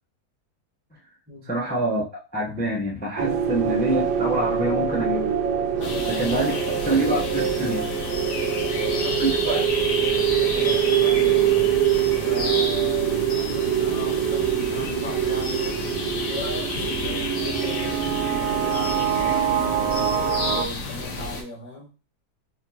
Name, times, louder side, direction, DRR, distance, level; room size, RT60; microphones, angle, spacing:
voice 1, 1.5-5.4 6.1-6.5 6.9-7.9 9.2-9.7, right 1 dB, 10° left, 0.5 m, -26 dB
sound 1, 3.2-20.6, right 9 dB, 75° right, 1.1 m, -24 dB
voice 2, 5.7-6.9 8.3-11.7 12.2-20.1 20.5-21.9, left 2 dB, 10° right, 1.2 m, -38 dB
sound 2, 5.8-21.4, left 3 dB, 70° left, 1.6 m, -31 dB
4.4 x 3.6 x 2.8 m
omnidirectional pair, 1.8 m